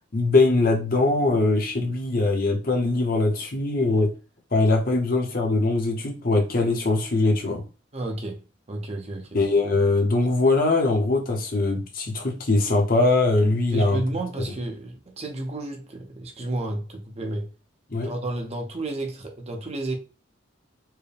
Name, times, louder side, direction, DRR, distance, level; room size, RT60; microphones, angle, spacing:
voice 1, 0.1-4.1 4.5-7.6 9.3-14.0 17.9-18.1, left 2 dB, 45° left, 0.8 m, -21 dB
voice 2, 7.9-8.4 8.7-9.3 13.7-17.5 18.0-20.0, right 2 dB, 30° right, 0.6 m, -31 dB
4.5 x 2.2 x 3.3 m
head